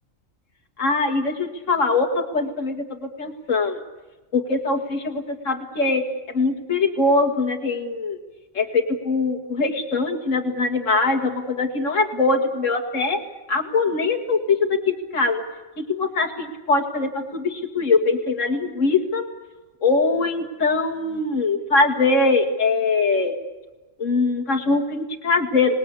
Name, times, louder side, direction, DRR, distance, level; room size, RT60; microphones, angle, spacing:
voice 1, 0.8-3.8 4.3-8.2 8.5-13.2 13.5-15.4 15.8-19.3 19.8-23.4 24.0-25.8, left 3 dB, 70° left, 2 dB, 2.3 m, -22 dB
26.0 x 19.5 x 8.3 m, 1.1 s
omnidirectional pair, 1.4 m